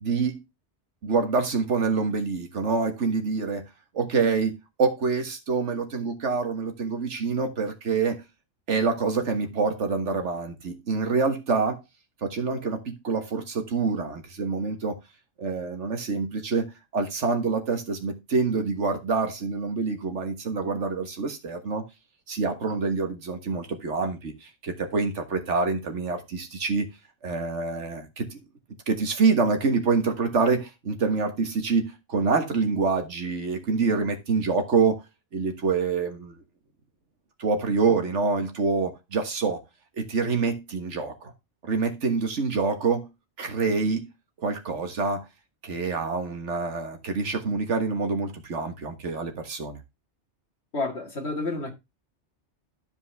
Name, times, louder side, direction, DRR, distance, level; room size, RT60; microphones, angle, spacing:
voice 1, 0.0-0.4 1.0-3.6 3.9-8.2 8.7-11.8 12.2-15.0 15.4-21.8 22.3-26.9 27.2-28.4 28.9-35.0 35.3-36.4 37.4-39.6 40.0-41.3 41.6-43.1 43.4-44.1 44.4-45.3 45.6-49.8, right 4 dB, 85° right, 1.8 m, -26 dB
voice 2, 50.7-51.7, left 3 dB, 65° left, 2.3 m, -29 dB
12.5 x 5.2 x 3.4 m
omnidirectional pair, 1.2 m